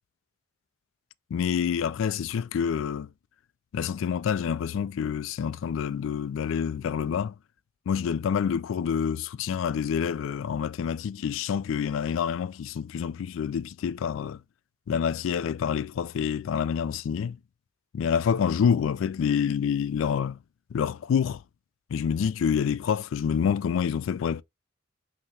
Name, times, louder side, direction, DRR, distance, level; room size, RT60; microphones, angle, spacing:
voice 1, 1.3-3.1 3.7-7.3 7.9-14.4 14.9-17.4 17.9-20.4 20.7-21.4 21.9-24.4, left 7 dB, 70° left, 0.3 m, -27 dB
5.5 x 2.8 x 3.2 m
head